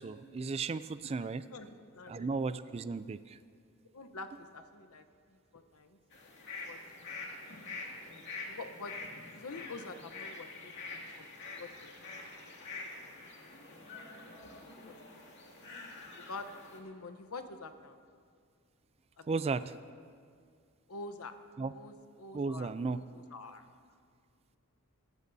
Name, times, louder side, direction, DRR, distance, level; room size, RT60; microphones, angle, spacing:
voice 1, 0.0-1.4 2.1-3.2 19.3-19.6 21.6-21.7 22.3-23.0, right 4 dB, 30° right, 14 dB, 0.3 m, -34 dB
voice 2, 1.2-2.3 3.9-6.0 6.6-6.8 8.0-9.0 9.3-10.7 11.2-11.3 11.6-11.9 12.6-12.8 13.7-14.9 16.2-18.0 19.2-19.4 20.9-21.3 21.7-22.7 23.1-23.7, left 3 dB, 80° left, 8 dB, 0.9 m, -47 dB
sound 1, 6.1-16.8, left 3 dB, 55° left, 2.2 m, -46 dB
24.5 x 13.5 x 2.7 m, 2.1 s
head